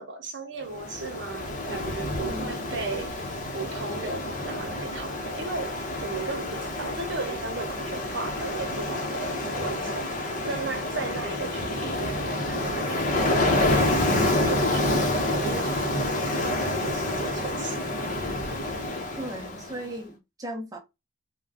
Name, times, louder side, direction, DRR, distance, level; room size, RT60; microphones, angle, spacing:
voice 1, 0.0-3.3 3.5-13.5 14.2-17.8, right 3 dB, 60° right, 0.9 m, -36 dB
Ocean, 0.7-19.8, left 1 dB, 40° left, 0.9 m, -28 dB
voice 2, 19.2-20.8, right 1 dB, 20° right, 0.7 m, -36 dB
3.6 x 2.3 x 3.5 m
head